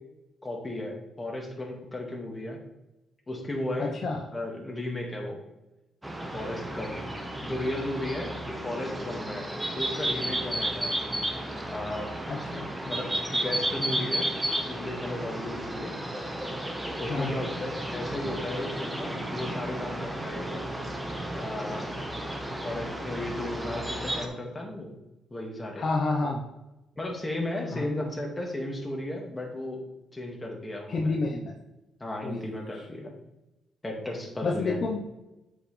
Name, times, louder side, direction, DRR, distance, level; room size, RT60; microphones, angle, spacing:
voice 1, 0.4-2.6 3.3-4.0 4.3-5.4 6.3-7.0 7.4-9.4 9.7-11.0 11.7-12.1 12.8-14.3 14.6-16.0 17.0-20.5 21.3-21.9 22.5-24.9 25.3-25.8 27.0-29.8 30.1-31.2 32.0-33.1 33.8-34.8, left 1 dB, 20° left, 0 dB, 1.9 m, -35 dB
voice 2, 3.8-4.3 12.3-12.7 17.1-17.4 25.8-26.4 27.7-27.8 30.9-31.5 32.2-32.4 32.7-32.9 34.4-35.0, left 3 dB, 55° left, 1 dB, 0.9 m, -29 dB
sound 1, 6.0-24.3, right 1 dB, 10° right, 1.2 m, -33 dB
7.9 x 5.6 x 3.3 m, 0.99 s
cardioid pair, 90°, 0 cm